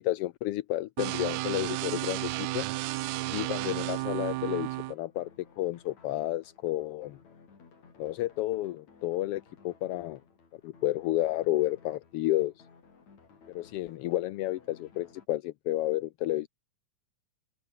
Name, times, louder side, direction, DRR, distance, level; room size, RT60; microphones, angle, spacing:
voice 1, 0.0-2.6 3.3-7.2 8.0-10.2 10.6-12.5 13.5-16.5, left 15 dB, 80° left, 1.3 m, -31 dB
sound 1, 1.0-4.9, right 19 dB, 80° right, 2.0 m, -33 dB
sound 2, 1.5-15.3, left 5 dB, 65° left, 5.6 m, -58 dB
omnidirectional pair, 3.5 m